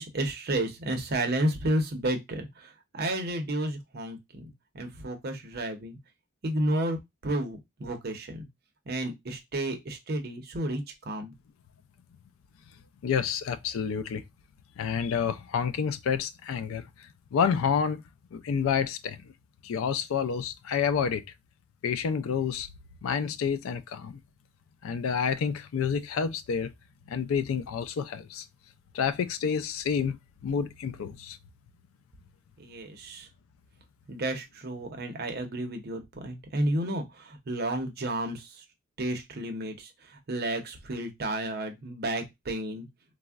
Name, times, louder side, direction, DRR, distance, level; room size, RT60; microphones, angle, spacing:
voice 1, 0.0-2.5 2.9-6.0 6.4-8.5 8.9-11.3 32.6-33.3 34.1-38.4 39.0-39.9 40.3-42.9, right 1 dB, 50° right, 0.6 m, -31 dB
voice 2, 13.0-14.2 14.8-18.0 18.3-19.3 19.6-21.2 21.8-22.7 23.0-24.2 24.8-26.7 27.1-28.4 28.9-31.4, left 7 dB, 75° left, 0.3 m, -29 dB
3.4 x 2.0 x 2.3 m
head